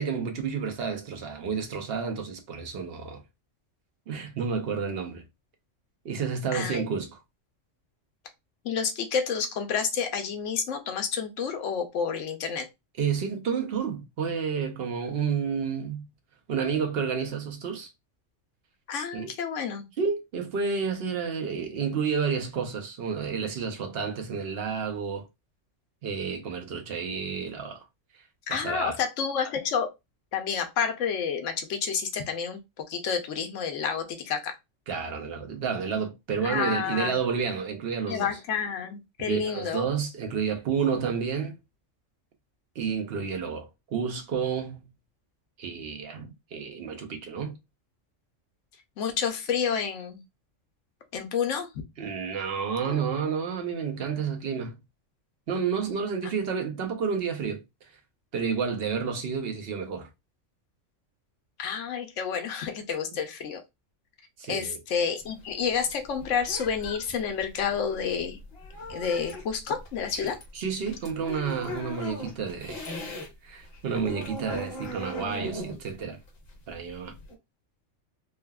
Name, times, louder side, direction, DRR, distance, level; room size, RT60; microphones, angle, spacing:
voice 1, 0.0-3.2 4.1-5.2 6.0-7.2 13.0-16.0 16.5-17.9 19.1-19.3 20.0-25.3 26.0-27.8 28.5-29.0 34.9-38.3 39.2-41.5 42.8-44.8 45.6-47.6 52.0-54.8 55.5-57.6 58.3-60.1 64.4-64.8 70.5-72.9 73.4-76.2 76.7-77.1, right 6 dB, 55° right, 0.8 m, -30 dB
voice 2, 6.5-6.9 8.6-12.7 18.9-19.9 28.5-29.9 30.3-32.6 32.9-34.5 36.4-37.2 38.1-39.9 49.0-50.2 51.1-51.7 52.8-53.0 61.6-63.6 64.5-68.4 68.9-70.4, left 6 dB, 75° left, 1.0 m, -29 dB
sound 1, 65.2-73.3 73.6-77.3, left 1 dB, 55° left, 1.1 m, -39 dB
3.3 x 2.1 x 2.3 m
omnidirectional pair, 1.3 m